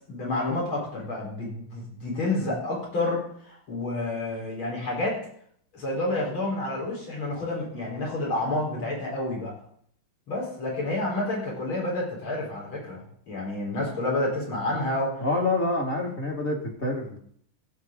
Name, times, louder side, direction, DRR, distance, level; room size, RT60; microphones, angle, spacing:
voice 1, 0.1-5.2 5.7-9.5 10.3-15.2, left 2 dB, 75° left, -2 dB, 4.7 m, -29 dB
voice 2, 15.2-17.2, left 2 dB, 30° left, 0 dB, 1.8 m, -27 dB
16.0 x 7.7 x 3.7 m, 0.62 s
omnidirectional pair, 2.3 m